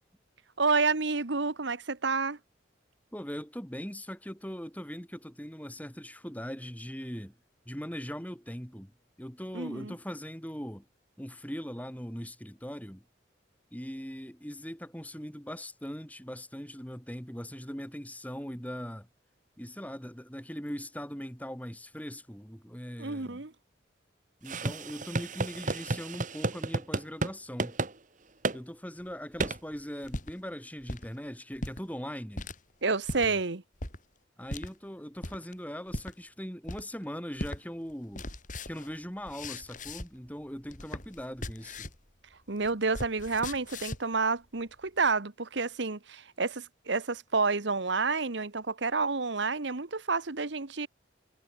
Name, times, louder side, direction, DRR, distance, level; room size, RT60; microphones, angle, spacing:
voice 1, 0.6-2.4 9.5-9.9 23.0-23.5 32.8-33.6 42.5-50.9, right 4 dB, 65° right, 1.2 m, -29 dB
voice 2, 3.1-7.4 7.7-8.9 9.2-10.9 11.2-13.0 13.7-19.1 19.6-23.4 24.4-27.8 28.5-32.5 33.2-33.4 34.4-38.3 38.7-41.9, equal, 10° left, 7.2 m, -40 dB
sound 1, 24.5-27.3 27.6-27.9 28.4-28.6 29.4-29.6, right 2 dB, 40° right, 1.2 m, -32 dB
sound 2, 29.1-30.3 30.8-31.1 31.5-31.8 32.4-32.6 33.1-33.3 33.8-34.0 34.5-34.7 35.2-35.5 35.9-36.1 36.7-37.0 37.4-37.6 37.9-40.3 40.6-42.1 42.3-44.1, left 1 dB, 40° left, 6.6 m, -39 dB
head